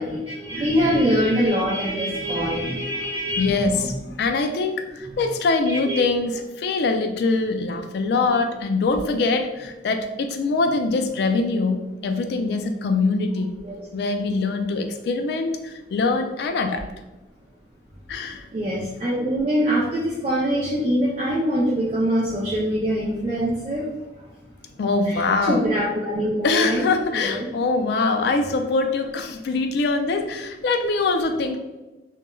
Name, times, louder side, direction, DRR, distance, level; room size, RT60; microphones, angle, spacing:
voice 1, 0.0-4.0 5.6-6.0 13.6-13.8 18.5-23.8 25.1-26.9 27.1-27.5, equal, 30° right, -5 dB, 0.4 m, -24 dB
voice 2, 3.4-13.5 13.9-16.9 18.1-18.5 24.8-25.6 26.4-31.6, left 3 dB, 60° left, 6 dB, 0.3 m, -23 dB
3.0 x 2.1 x 2.2 m, 1.1 s
head